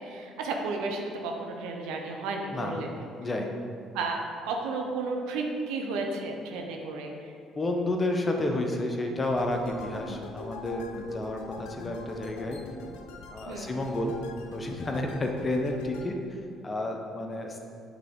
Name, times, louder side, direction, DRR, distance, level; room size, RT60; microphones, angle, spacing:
voice 1, 0.0-3.1 3.9-7.3 13.5-13.7, right 3 dB, 70° right, 2 dB, 0.7 m, -33 dB
voice 2, 2.5-2.8 3.2-3.5 7.6-12.6 13.3-14.1 14.5-16.2 16.6-17.6, left 1 dB, 30° left, 2 dB, 0.9 m, -30 dB
sound 1, 9.2-16.1, left 3 dB, 75° left, 0.5 m, -44 dB
8.1 x 3.7 x 3.7 m, 2.4 s
hypercardioid pair, 55°, 0 cm